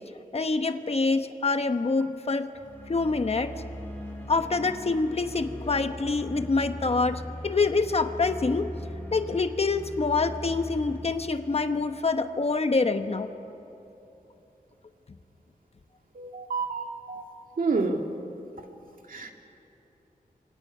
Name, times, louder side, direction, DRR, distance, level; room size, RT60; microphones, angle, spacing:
voice 1, 0.3-2.5 2.9-3.5 4.3-8.7 9.1-13.3, left 3 dB, 45° left, 8 dB, 1.0 m, -26 dB
sound 1, 2.5-12.6, left 1 dB, 15° left, 5.4 m, -40 dB
voice 2, 16.2-17.2 17.6-18.0 19.1-19.3, right 4 dB, 70° right, 3 dB, 2.1 m, -29 dB
29.0 x 25.0 x 5.6 m, 3.0 s
wide cardioid pair, 125°, 15 cm